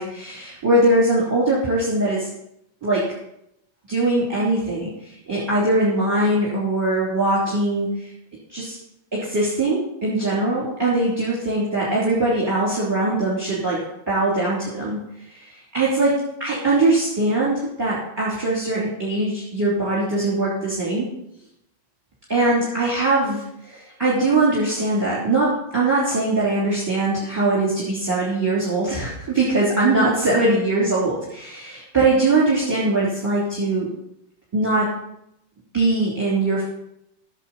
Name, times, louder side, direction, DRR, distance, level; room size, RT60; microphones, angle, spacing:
voice 1, 0.0-2.3 2.8-3.1 3.9-8.1 8.5-8.8 9.1-15.0 15.3-15.5 15.7-21.1 22.3-33.9 34.5-34.9 35.7-36.6, right 2 dB, 10° right, -7 dB, 3.0 m, -21 dB
13.5 x 7.3 x 4.2 m, 0.79 s
omnidirectional pair, 2.1 m